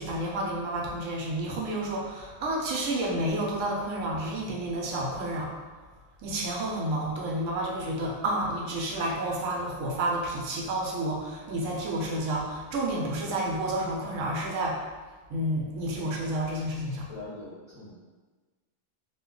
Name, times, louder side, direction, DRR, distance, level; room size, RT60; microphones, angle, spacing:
voice 1, 0.0-5.5 6.2-14.8 15.3-17.1, right 1 dB, 75° right, -2 dB, 0.9 m, -30 dB
voice 2, 17.1-17.9, left 2 dB, 30° left, -10 dB, 0.7 m, -42 dB
2.6 x 2.2 x 3.6 m, 1.3 s
omnidirectional pair, 1.3 m